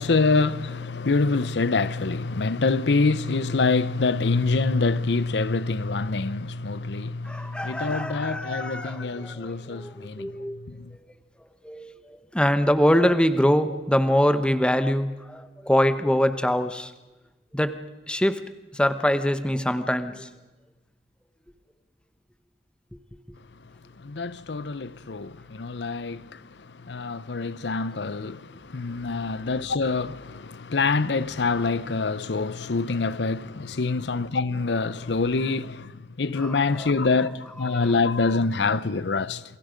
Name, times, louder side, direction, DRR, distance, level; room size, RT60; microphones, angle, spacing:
voice 1, 0.0-10.9 24.0-39.4, left 3 dB, 80° left, 0.7 m, -26 dB
voice 2, 7.2-10.6 11.6-11.9 12.3-16.9 17.5-17.7 18.1-18.5 18.7-20.3 36.4-36.9 37.7-37.9, equal, 5° left, 0.9 m, -24 dB
28.5 x 22.5 x 5.2 m
head